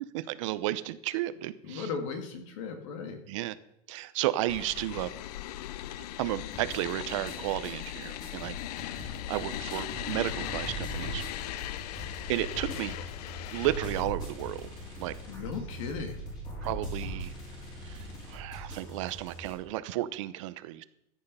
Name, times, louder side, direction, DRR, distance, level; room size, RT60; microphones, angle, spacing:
voice 1, 0.1-1.9 3.3-3.5 3.9-5.1 6.2-8.6 8.8-11.3 12.3-12.9 13.5-14.7 15.0-15.1 16.6-17.3 17.8-18.0 18.3-20.8, right 15 dB, 55° right, 14 dB, 0.7 m, -33 dB
voice 2, 1.6-3.2 13.0-13.1 15.3-16.3, left 5 dB, 55° left, 6 dB, 2.5 m, -37 dB
sound 1, 4.5-14.0, left 14 dB, 80° left, 0.6 m, -38 dB
sound 2, 6.5-19.5, right 1 dB, 20° left, 4.1 m, -41 dB
14.5 x 9.3 x 5.5 m, 0.82 s
supercardioid pair, 175°, 20 cm